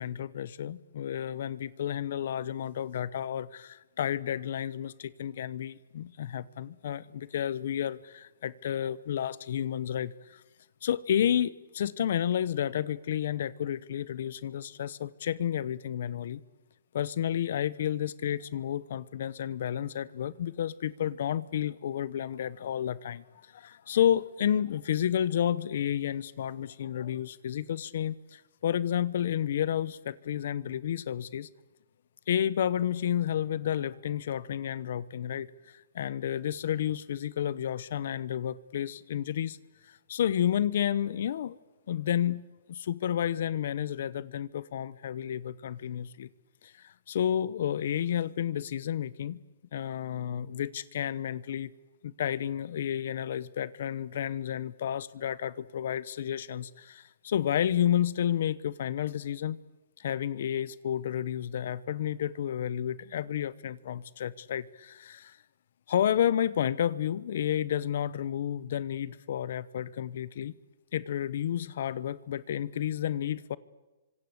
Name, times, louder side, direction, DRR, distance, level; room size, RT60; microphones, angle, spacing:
voice 1, 0.0-10.4 10.8-16.4 16.9-23.2 23.5-31.5 32.3-39.6 40.1-41.6 41.9-42.4 42.7-46.3 46.6-49.4 49.7-51.7 52.0-59.6 60.0-65.4 65.9-70.5 70.9-73.6, left 10 dB, 55° left, 19 dB, 0.9 m, -31 dB
27.5 x 25.5 x 8.1 m, 1.1 s
hypercardioid pair, 165°, 0 cm